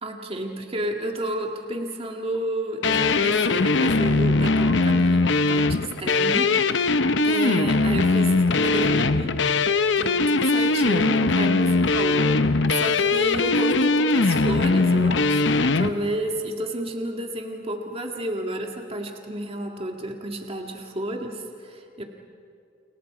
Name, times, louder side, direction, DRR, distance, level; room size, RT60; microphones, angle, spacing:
voice 1, 0.0-9.4 10.0-22.0, right 1 dB, 30° right, 2 dB, 1.9 m, -31 dB
sound 1, 2.8-15.9, left 3 dB, 65° left, 0.8 m, -21 dB
30.0 x 30.0 x 5.0 m, 2.5 s
head